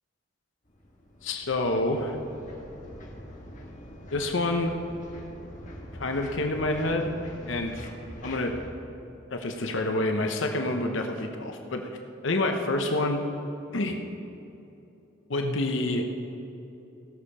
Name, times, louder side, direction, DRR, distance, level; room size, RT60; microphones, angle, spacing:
sound 1, 0.6-8.7, equal, 40° left, 1.6 m, -44 dB
voice 1, 1.2-2.2 4.1-4.7 5.9-7.1 7.5-7.9 8.2-8.6 9.3-11.9 12.2-13.2 13.7-14.0 15.3-16.1, left 2 dB, 75° left, 4 dB, 0.9 m, -27 dB
16.5 x 6.7 x 5.5 m, 2.8 s
head